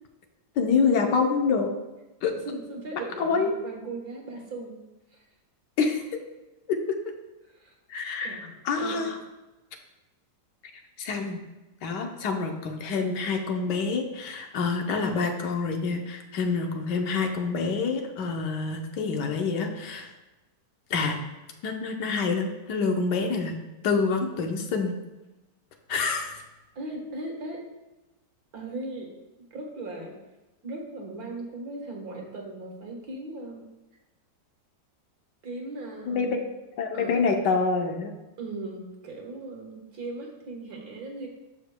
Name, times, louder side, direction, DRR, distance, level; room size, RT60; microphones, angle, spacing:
voice 1, 0.6-1.7 2.2-2.3 3.2-3.6 5.8-6.0 6.7-7.0 7.9-8.4 8.6-9.2 11.0-11.4 11.8-20.1 20.9-21.2 21.6-23.6 23.8-24.9 25.9-26.4 36.1-36.4 36.8-38.1, left 4 dB, 75° left, 4 dB, 1.4 m, -26 dB
voice 2, 2.5-4.8 5.1-5.2 7.5-7.8 8.2-9.1 26.8-27.6 28.5-29.1 29.5-30.1 30.6-33.6 35.4-36.4 36.9-37.4 38.4-41.3, right 2 dB, 60° right, 0 dB, 1.8 m, -38 dB
13.0 x 4.9 x 2.2 m, 1.1 s
omnidirectional pair, 1.9 m